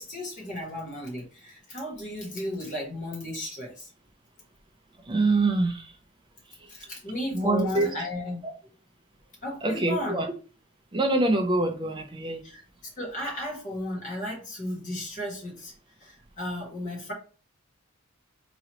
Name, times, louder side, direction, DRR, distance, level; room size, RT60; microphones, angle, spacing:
voice 1, 0.0-3.9 6.7-8.4 9.4-10.2 12.4-12.6 13.0-15.7 16.0-17.1, left 1 dB, 35° left, -2 dB, 1.5 m, -34 dB
voice 2, 5.0-5.9 6.6-6.7 7.3-8.1 8.4-8.5 9.6-10.3 10.9-12.4, right 2 dB, 20° right, 4 dB, 0.5 m, -25 dB
3.8 x 3.0 x 3.0 m, 0.38 s
head